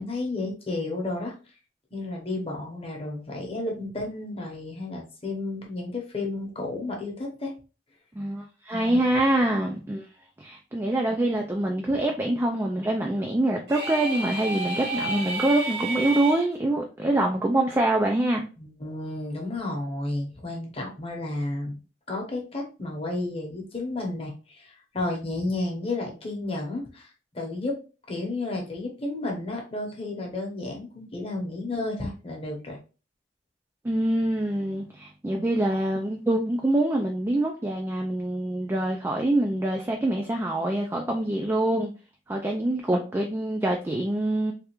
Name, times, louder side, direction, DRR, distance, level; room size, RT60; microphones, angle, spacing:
voice 1, 0.0-1.3 1.9-7.5 8.7-9.0 18.6-21.8 22.1-27.7 28.1-32.8, left 2 dB, 30° left, 0.9 m, -32 dB
voice 2, 8.2-10.1 10.4-18.4 33.8-41.9 42.3-44.5, right 1 dB, 15° right, 0.3 m, -25 dB
sound 1, 13.7-16.5, right 2 dB, 60° right, 1.0 m, -31 dB
3.3 x 2.4 x 2.9 m
head